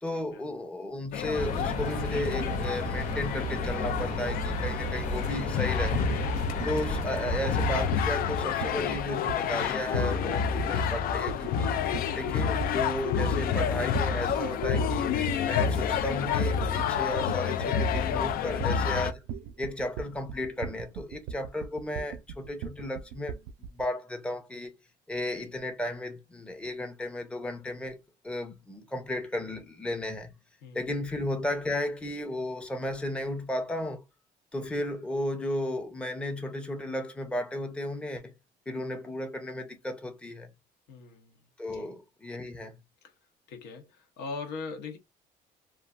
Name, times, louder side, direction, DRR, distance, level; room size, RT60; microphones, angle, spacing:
voice 1, 0.0-6.0 6.6-11.8 12.1-15.2 15.4-19.2 19.6-24.7 25.1-28.0 28.2-30.3 30.7-34.0 34.5-38.3 38.7-40.5 41.6-42.8, left 1 dB, 5° left, 0.6 m, -34 dB
sound 1, 1.1-19.1, left 7 dB, 60° left, 0.4 m, -29 dB
sound 2, 1.3-7.9, equal, 45° left, 1.0 m, -33 dB
sound 3, 5.9-23.8, right 7 dB, 90° right, 0.4 m, -39 dB
voice 2, 30.6-30.9 40.9-41.4 41.7-42.0 43.0-43.1 43.5-45.0, left 4 dB, 80° left, 0.8 m, -41 dB
3.1 x 2.4 x 2.4 m
cardioid pair, 110°, 17 cm